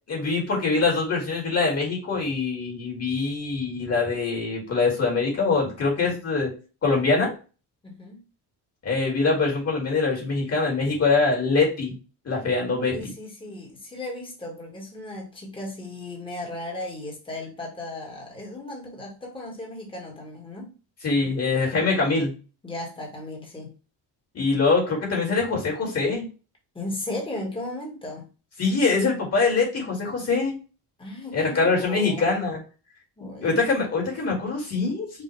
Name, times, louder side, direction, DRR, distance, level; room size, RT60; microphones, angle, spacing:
voice 1, 0.1-6.5 6.8-7.3 8.8-12.0 12.3-13.1 21.0-22.3 24.3-26.3 28.6-30.6 31.3-32.6 33.4-35.2, left 4 dB, 35° left, 1.9 m, -23 dB
voice 2, 7.8-8.2 12.9-20.7 22.6-23.7 26.7-28.3 31.0-32.3 33.2-33.7, left 1 dB, 10° left, 1.4 m, -36 dB
5.5 x 2.5 x 3.2 m
cardioid pair, 170°, 41 cm